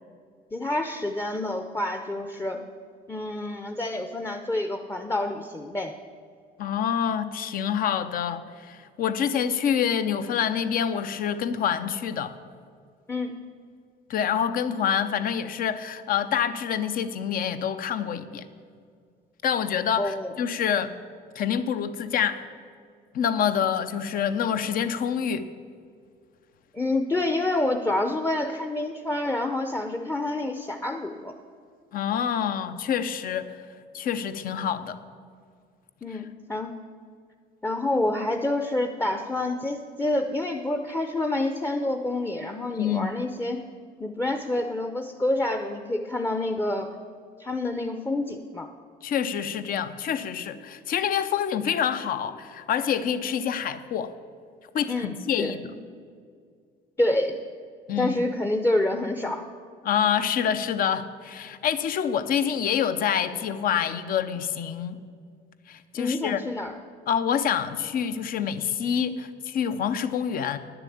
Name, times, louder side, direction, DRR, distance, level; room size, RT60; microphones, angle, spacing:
voice 1, 0.5-2.6 3.1-5.9 13.1-13.3 20.0-20.3 26.7-31.3 36.0-36.7 37.6-43.6 44.0-46.9 47.4-48.7 54.9-55.8 57.0-57.4 58.0-59.4 65.9-66.7, left 2 dB, 15° left, 5 dB, 0.6 m, -28 dB
voice 2, 6.6-12.3 14.1-18.5 19.4-20.9 21.3-22.4 23.1-25.5 31.9-33.6 33.9-35.0 36.1-36.2 42.8-43.1 49.0-54.1 54.7-55.7 57.9-58.2 59.8-65.0 65.7-66.4 67.1-70.6, left 8 dB, 60° left, 12 dB, 0.7 m, -27 dB
10.0 x 7.0 x 8.5 m, 2.2 s
cardioid pair, 110°, 17 cm